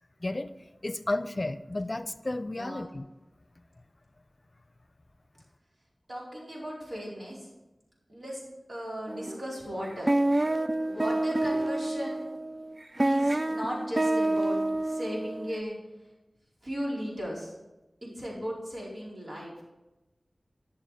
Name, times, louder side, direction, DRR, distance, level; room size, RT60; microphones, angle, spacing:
voice 1, 0.2-0.5 0.8-3.0, left 2 dB, 45° left, 12 dB, 0.6 m, -32 dB
voice 2, 2.5-3.0 6.1-7.5 8.1-8.4 8.7-10.1 10.9-12.3 13.0-14.6 14.8-15.8 16.6-17.5 18.1-19.6, equal, 70° right, -5 dB, 4.5 m, -36 dB
sound 1, 9.1-9.5 9.9-15.6, right 1 dB, 40° right, 0.4 m, -28 dB
11.5 x 7.2 x 5.0 m, 1.0 s
wide cardioid pair, 45°, 0 cm